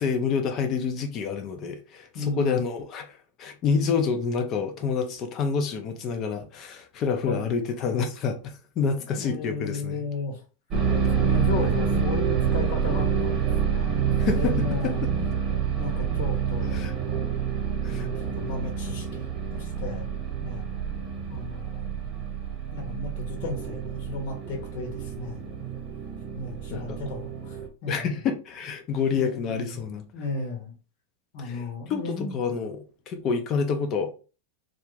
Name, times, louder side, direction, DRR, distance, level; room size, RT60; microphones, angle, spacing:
voice 1, 0.0-10.0 14.2-14.5 14.8-15.1 16.7-16.9 17.8-18.1 26.7-27.0 27.9-30.0 31.4-31.6 31.9-34.1, left 5 dB, 40° left, 0.6 m, -28 dB
voice 2, 2.1-2.6 7.2-7.6 9.1-10.4 11.2-15.0 15.8-17.2 17.9-19.2 19.5-20.1 20.4-20.7 21.3-21.9 22.7-25.4 26.3-28.2 29.1-29.8 30.1-30.7 31.3-32.4, left 3 dB, 60° left, 1.0 m, -34 dB
sound 1, 10.7-27.7, right 7 dB, 35° right, 0.8 m, -27 dB
2.4 x 2.1 x 3.1 m
hypercardioid pair, 105°, 0 cm